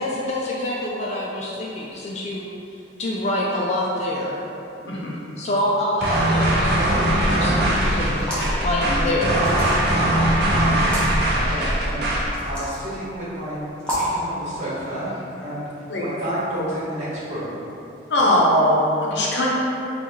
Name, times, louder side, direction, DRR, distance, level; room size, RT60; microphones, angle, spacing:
voice 1, 0.0-2.4 3.0-4.4 5.4-8.3 8.6-9.4, left 1 dB, 35° left, -4 dB, 0.3 m, -26 dB
voice 2, 4.8-5.2 15.9-16.1 18.1-19.5, left 1 dB, 65° left, -4 dB, 0.7 m, -20 dB
sound 1, 6.0-12.3, right 1 dB, 55° right, 0.6 m, -21 dB
sound 2, 8.1-8.6 9.4-10.0 10.8-11.1 12.3-12.8 13.8-14.2, equal, 5° left, 0.8 m, -28 dB
voice 3, 11.3-13.6 13.8-17.7, right 1 dB, 35° right, -9 dB, 1.2 m, -31 dB
4.0 x 2.4 x 4.5 m, 2.9 s
head